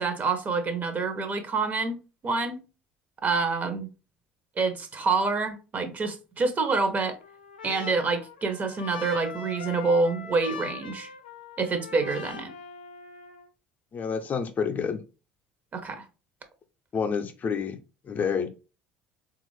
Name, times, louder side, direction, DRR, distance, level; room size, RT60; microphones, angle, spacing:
voice 1, 0.0-2.6 3.2-3.9 4.6-7.2 7.6-11.1 11.6-12.5 15.7-16.0, right 4 dB, 35° right, 0.8 m, -27 dB
Trumpet, 6.7-13.5, left 6 dB, 90° left, 0.4 m, -42 dB
voice 2, 13.9-15.0 16.9-17.8 18.0-18.5, left 6 dB, 40° left, 0.6 m, -28 dB
3.7 x 2.4 x 3.1 m
hypercardioid pair, 60°, 5 cm